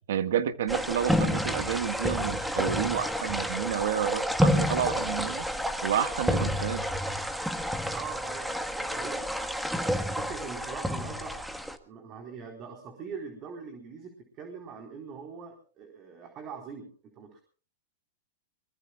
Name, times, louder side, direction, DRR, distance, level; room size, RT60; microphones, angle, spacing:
voice 1, 0.1-5.5 5.8-6.8, right 9 dB, 75° right, 11 dB, 1.7 m, -30 dB
sound 1, 0.7-11.8, equal, ahead, 1.5 m, -29 dB
voice 2, 7.9-9.2 9.7-11.4 11.8-17.4, right 6 dB, 35° right, 3 dB, 4.3 m, -42 dB
24.0 x 22.5 x 2.4 m, 0.39 s
hypercardioid pair, 125°, 0 cm